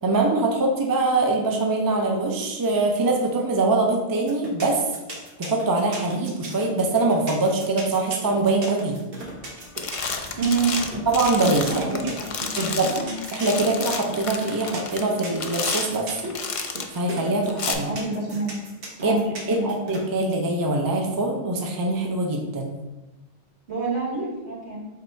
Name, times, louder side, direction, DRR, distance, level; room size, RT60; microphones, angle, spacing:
voice 1, 0.0-4.8 5.4-9.0 11.1-12.1 12.6-12.9 13.3-16.3 16.9-17.9 19.0-19.2 19.5-22.7 24.1-24.3, right 2 dB, 30° right, 1 dB, 0.4 m, -23 dB
sound 1, 4.3-20.0, right 2 dB, 60° right, 1.1 m, -37 dB
sound 2, 9.3-9.5 9.8-17.0 17.5-17.7, left 5 dB, 65° left, 0.3 m, -31 dB
voice 2, 10.4-11.0 11.7-13.1 17.8-18.6 19.0-19.7 23.7-24.9, right 4 dB, 80° right, -5 dB, 1.7 m, -28 dB
3.8 x 3.1 x 4.4 m, 1.1 s
omnidirectional pair, 1.1 m